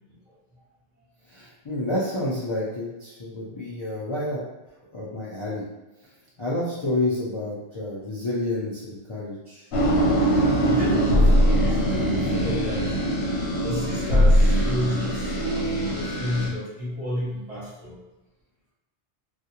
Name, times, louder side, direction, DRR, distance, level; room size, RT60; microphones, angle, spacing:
voice 1, 1.3-4.4 4.9-5.6 6.4-9.7, left 1 dB, 40° left, -8 dB, 0.4 m, -29 dB
sound 1, 9.7-16.5, equal, 70° left, 1.0 m, -21 dB
voice 2, 10.6-13.0 13.6-18.0, equal, 35° right, -8 dB, 0.8 m, -31 dB
2.4 x 2.1 x 2.8 m, 1.1 s
omnidirectional pair, 1.1 m